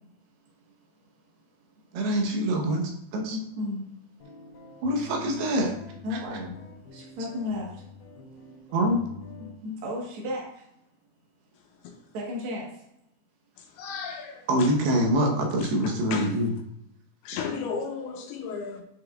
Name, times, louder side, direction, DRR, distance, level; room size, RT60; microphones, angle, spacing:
voice 1, 0.5-1.1 3.3-3.9 6.0-6.6 6.9-8.4 9.4-10.7 12.1-12.8, left 2 dB, 60° right, -3 dB, 1.4 m, -35 dB
voice 2, 1.9-3.4 4.8-5.7 8.7-9.0 14.5-16.5, right 1 dB, 80° right, 1 dB, 3.1 m, -25 dB
sound 1, 4.2-9.5, left 4 dB, 45° left, 2.9 m, -46 dB
voice 3, 13.6-14.7 15.6-16.4 17.2-18.8, left 5 dB, 85° left, 4 dB, 2.8 m, -35 dB
10.5 x 5.1 x 2.4 m, 0.80 s
omnidirectional pair, 4.6 m